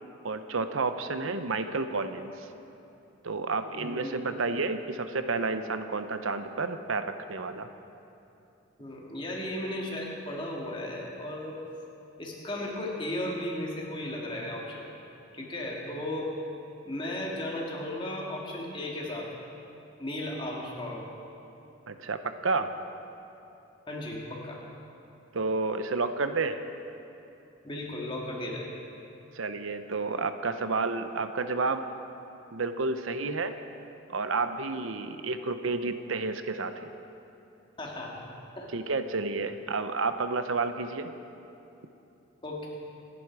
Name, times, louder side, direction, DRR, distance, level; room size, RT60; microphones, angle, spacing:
voice 1, 0.2-2.5 3.2-7.7 21.9-22.7 25.3-26.6 29.3-31.9 32.5-33.6 34.1-36.9 38.7-41.1, right 3 dB, 85° right, 9 dB, 0.8 m, -30 dB
voice 2, 3.6-4.1 8.8-11.6 12.2-14.9 15.3-16.3 16.8-19.3 20.0-21.1 23.9-24.6 27.6-28.7 37.8-38.2 38.6-38.7 42.4-42.7, left 1 dB, 25° left, -2 dB, 2.5 m, -35 dB
26.5 x 11.5 x 4.8 m, 2.9 s
head